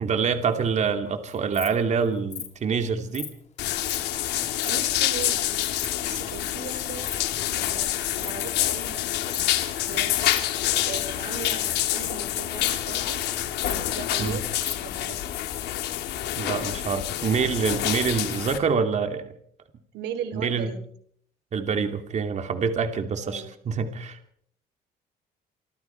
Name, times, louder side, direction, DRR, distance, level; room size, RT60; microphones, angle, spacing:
voice 1, 0.0-3.3 14.2-14.4 16.4-19.3 20.4-20.7 21.5-24.2, right 6 dB, 45° right, 6 dB, 2.7 m, -26 dB
Insect, 1.3-1.7 2.3-2.5 3.1-3.3 3.8-4.0 4.3-4.7 5.2-5.3 5.5-5.9 6.4-6.5 6.9-7.2 7.4-7.7 8.1-8.3 8.6-8.9 9.3-9.5 9.8-9.9 10.3-10.4 10.8-11.0 11.3-12.2 12.6-12.7 13.0-13.3 13.6-14.3 14.6-14.7, left 7 dB, 45° left, 4.3 m, -36 dB
sound 1, 3.6-18.6, left 13 dB, 85° left, 3.3 m, -27 dB
voice 2, 4.6-5.7 6.0-7.1 7.6-9.6 9.9-10.3 10.9-13.2 13.7-15.3 19.9-20.8 23.2-23.5, right 7 dB, 85° right, 10 dB, 3.5 m, -38 dB
27.5 x 25.5 x 4.6 m, 0.66 s
cardioid pair, 110°, 17 cm